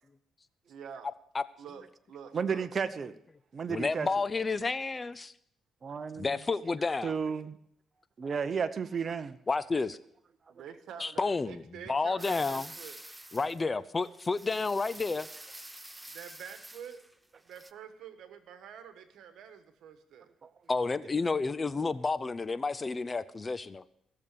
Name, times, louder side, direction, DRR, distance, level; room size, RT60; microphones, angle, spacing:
voice 1, 0.7-1.1 1.6-2.7 10.5-13.0 16.1-17.0 17.4-20.3, right 8 dB, 75° right, 1.5 m, -47 dB
voice 2, 2.3-3.1 3.5-4.1 5.8-6.3 7.0-7.6 8.2-9.4 20.4-20.5, right 6 dB, 45° right, 0.9 m, -32 dB
voice 3, 3.7-5.3 6.2-7.1 9.5-10.0 11.0-11.6 11.9-12.7 13.3-15.3 20.7-23.8, left 4 dB, 30° left, 0.6 m, -30 dB
sound 1, 12.2-13.6 14.0-17.1 17.5-17.7, right 1 dB, 10° right, 0.7 m, -47 dB
16.5 x 7.1 x 6.8 m
cardioid pair, 90°, 0 cm